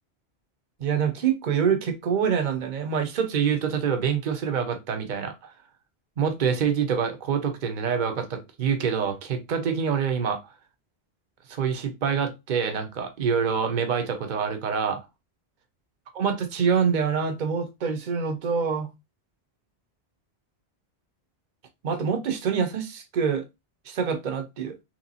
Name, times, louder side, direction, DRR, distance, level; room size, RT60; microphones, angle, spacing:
voice 1, 0.8-5.5 6.2-10.4 11.5-15.0 16.1-18.9 21.8-23.4 23.9-24.8, right 6 dB, 50° right, 0.8 m, -26 dB
3.2 x 3.0 x 4.0 m
omnidirectional pair, 1.1 m